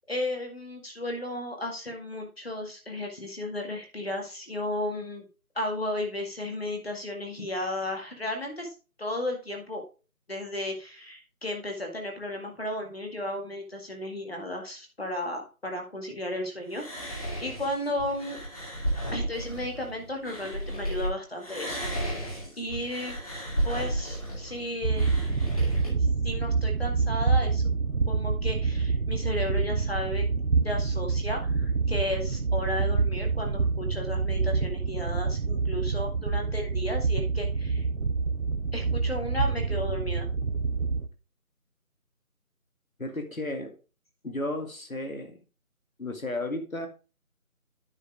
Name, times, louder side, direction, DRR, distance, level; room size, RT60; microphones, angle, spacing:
voice 1, 0.0-5.3 5.6-9.8 10.3-18.4 19.1-23.2 23.6-27.6 28.1-30.2 30.6-37.9 38.7-40.3, left 1 dB, 40° left, 2 dB, 2.1 m, -34 dB
sound 1, 16.7-21.1 21.4-25.9, right 1 dB, 25° left, 2.1 m, -33 dB
sound 2, 24.8-41.1, right 4 dB, 65° right, 0.9 m, -27 dB
voice 2, 43.0-43.8 44.2-45.4 46.0-46.9, left 2 dB, 65° left, 5 dB, 2.2 m, -33 dB
9.9 x 4.8 x 4.8 m, 0.33 s
figure-of-eight pair, 170°, 44 cm